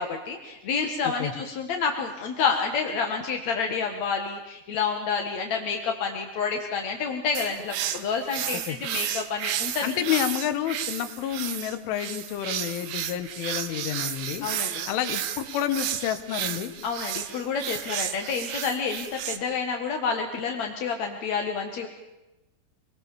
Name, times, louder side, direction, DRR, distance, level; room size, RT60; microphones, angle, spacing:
voice 1, 0.0-10.2 14.4-14.9 16.8-21.9, left 5 dB, 60° left, 3 dB, 2.0 m, -29 dB
sound 1, 7.3-19.4, right 10 dB, 65° right, 2.7 m, -32 dB
voice 2, 9.8-14.5 14.9-16.7, left 11 dB, 85° left, 9 dB, 3.9 m, -29 dB
26.0 x 20.5 x 7.1 m, 1.0 s
omnidirectional pair, 5.4 m